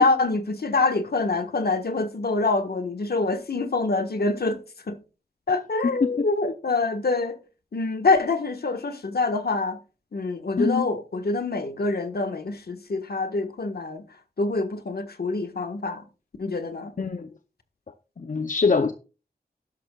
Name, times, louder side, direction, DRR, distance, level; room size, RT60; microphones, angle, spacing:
voice 1, 0.0-4.6 4.9-5.0 5.5-7.4 7.7-9.8 10.1-14.0 14.4-16.0 16.4-16.9, left 3 dB, 70° left, 1.5 m, -25 dB
voice 2, 17.0-17.3 18.2-18.9, left 4 dB, 55° left, 0.7 m, -23 dB
12.0 x 11.0 x 2.4 m
wide cardioid pair, 80°, 16 cm